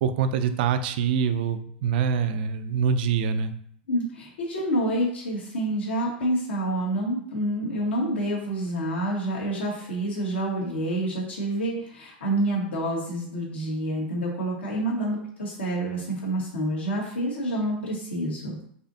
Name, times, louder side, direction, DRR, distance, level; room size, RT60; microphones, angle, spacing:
voice 1, 0.0-3.5, right 7 dB, 60° right, 10 dB, 0.4 m, -25 dB
voice 2, 3.9-18.6, right 1 dB, 85° left, -3 dB, 1.3 m, -28 dB
4.2 x 2.7 x 2.6 m, 0.65 s
hypercardioid pair, 105°, 6 cm